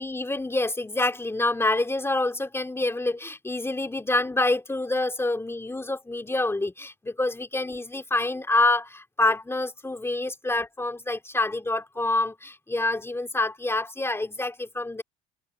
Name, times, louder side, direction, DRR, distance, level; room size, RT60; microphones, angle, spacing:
voice 1, 0.0-15.0, left 2 dB, 15° left, 3.1 m, -27 dB
open air
supercardioid pair, 80°, 19 cm